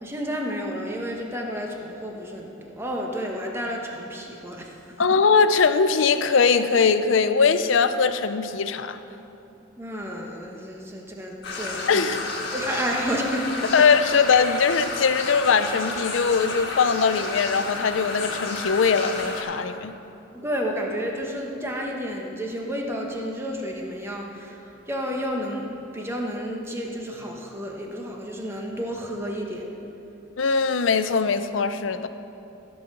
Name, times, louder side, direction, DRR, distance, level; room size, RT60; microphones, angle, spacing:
voice 1, 0.0-5.1 9.8-12.1 12.5-13.9 20.3-29.6, equal, 10° right, 0 dB, 1.2 m, -31 dB
voice 2, 5.0-9.0 11.9-12.2 13.7-19.9 30.4-32.1, left 5 dB, 70° left, 11 dB, 0.5 m, -21 dB
sound 1, 11.4-19.4, left 3 dB, 55° left, 1.7 m, -31 dB
15.0 x 5.5 x 6.8 m, 2.9 s
head